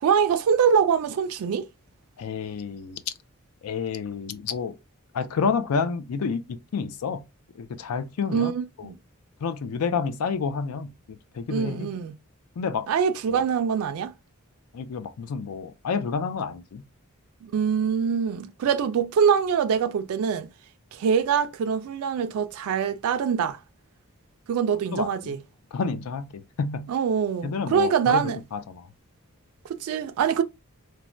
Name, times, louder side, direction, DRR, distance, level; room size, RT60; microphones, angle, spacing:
voice 1, 0.0-1.7 8.3-9.0 11.5-12.2 12.9-14.1 17.4-20.5 20.9-23.6 24.5-25.4 26.9-28.4 29.7-30.4, right 7 dB, 75° right, 0.3 m, -24 dB
voice 2, 2.2-3.1 3.6-4.8 5.1-7.2 7.6-8.5 8.8-8.9 9.4-10.9 11.3-11.9 12.6-12.9 13.3-13.4 14.7-16.8 24.9-25.4 25.7-26.9 27.4-28.9, left 5 dB, 90° left, 0.4 m, -29 dB
3.1 x 2.1 x 2.5 m
head